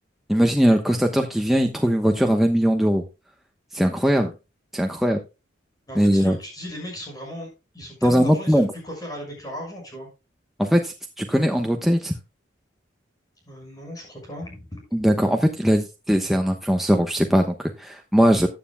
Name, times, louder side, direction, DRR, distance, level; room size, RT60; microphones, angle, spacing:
voice 1, 0.3-3.0 3.7-4.3 4.7-5.2 5.9-6.3 8.0-8.7 10.6-12.1 14.9-18.5, equal, ahead, 3 dB, 0.9 m, -20 dB
voice 2, 5.9-7.5 7.7-10.1 13.5-14.8, equal, 20° left, 1 dB, 6.0 m, -36 dB
15.0 x 9.2 x 2.2 m, 0.27 s
head